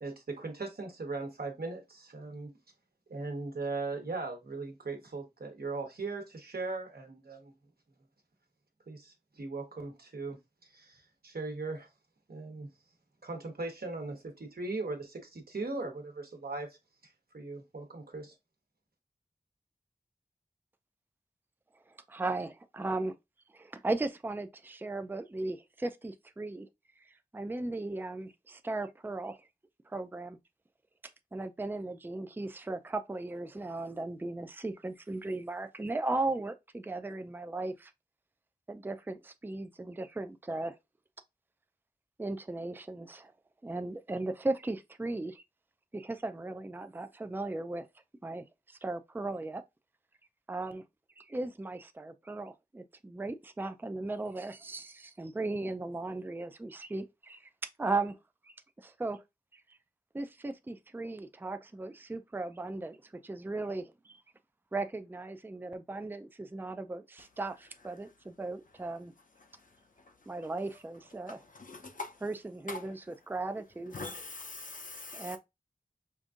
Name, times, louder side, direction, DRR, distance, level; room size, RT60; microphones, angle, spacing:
voice 1, 0.0-2.5 3.1-7.5 8.9-11.9 12.3-12.7 13.2-16.7 17.0-18.3, right 3 dB, 80° right, 1.1 m, -39 dB
voice 2, 21.9-23.1 23.5-26.7 27.0-29.4 29.9-30.4 31.3-37.9 38.7-40.7 42.2-43.3 43.6-45.4 45.9-47.8 48.2-49.6 50.5-50.8 51.2-57.5 57.8-58.2 58.4-59.2 59.5-59.6 60.1-64.2 64.7-69.1 70.3-71.4 72.2-74.0 75.1-75.4, right 2 dB, 15° right, 0.4 m, -37 dB
voice 3, 71.6-72.1 72.7-72.8 73.9-75.3, left 3 dB, 60° left, 0.6 m, -41 dB
5.1 x 2.6 x 2.4 m
wide cardioid pair, 65°, 16 cm